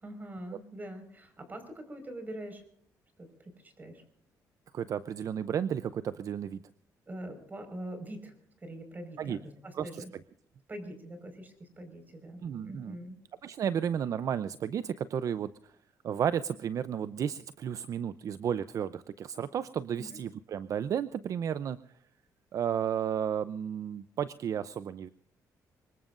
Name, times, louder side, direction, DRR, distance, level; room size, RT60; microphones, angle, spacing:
voice 1, 0.0-2.6 3.2-4.0 7.1-10.1 10.7-13.2 20.0-20.2, right 1 dB, 25° right, 8 dB, 5.0 m, -44 dB
voice 2, 4.7-6.6 9.2-9.4 9.8-9.9 12.4-13.0 13.4-15.5 16.0-21.8 22.5-25.1, right 8 dB, 55° right, 14 dB, 0.6 m, -33 dB
25.0 x 21.5 x 2.6 m, 0.65 s
cardioid pair, 110°, 7 cm